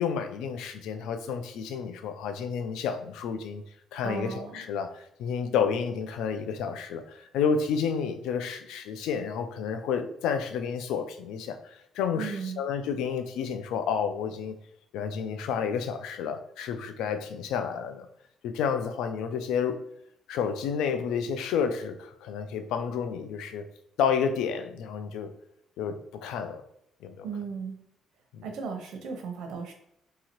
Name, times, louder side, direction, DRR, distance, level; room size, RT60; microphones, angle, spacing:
voice 1, 0.0-3.6 3.9-14.5 14.9-18.1 18.4-19.8 20.3-23.7 24.0-25.3 25.8-26.6 27.0-27.3 28.3-28.4, left 6 dB, 90° left, 0.4 m, -30 dB
voice 2, 4.0-4.6 12.1-12.6 27.2-27.8 28.4-29.7, right 5 dB, 80° right, 0.7 m, -36 dB
2.8 x 2.8 x 2.9 m
cardioid pair, 100°, 0 cm